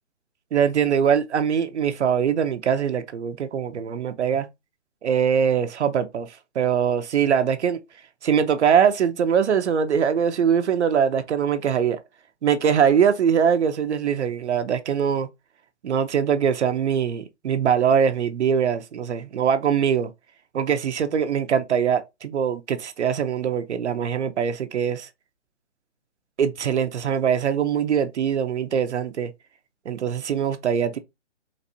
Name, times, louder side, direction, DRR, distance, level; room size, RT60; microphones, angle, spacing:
voice 1, 0.5-4.5 5.0-6.3 6.5-7.8 8.2-12.0 12.4-15.3 15.8-20.1 20.5-25.1 26.4-29.3 29.9-31.0, right 7 dB, 70° right, 0.6 m, -22 dB
4.1 x 2.5 x 2.6 m
hypercardioid pair, 160°, 36 cm